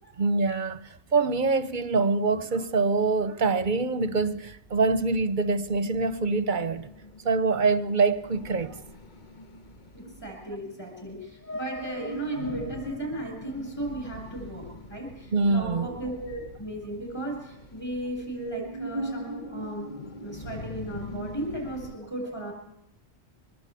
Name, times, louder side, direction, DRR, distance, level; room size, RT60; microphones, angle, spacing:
voice 1, 0.2-6.9 7.2-8.8 15.3-16.0, right 4 dB, 45° right, 1.1 m, -25 dB
sound 1, 4.4-22.0, equal, 40° left, 1.5 m, -41 dB
voice 2, 9.9-19.9 20.2-22.5, right 1 dB, 20° left, 7.7 m, -36 dB
24.5 x 20.5 x 8.4 m
omnidirectional pair, 1.2 m